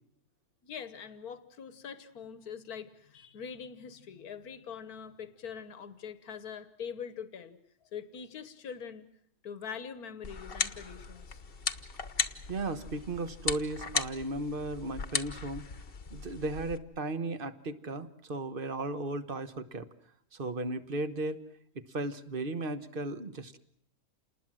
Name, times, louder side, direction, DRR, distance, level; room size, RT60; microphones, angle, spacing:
voice 1, 0.6-7.6 7.9-9.1 9.4-11.4, left 7 dB, 90° left, 12 dB, 1.7 m, -43 dB
sound 1, 10.2-16.8, left 5 dB, 45° left, 1.2 m, -37 dB
voice 2, 12.5-15.6 16.1-19.9 20.3-21.4 21.9-23.6, right 2 dB, 40° right, 11 dB, 1.3 m, -35 dB
28.5 x 20.0 x 7.6 m, 0.70 s
omnidirectional pair, 1.5 m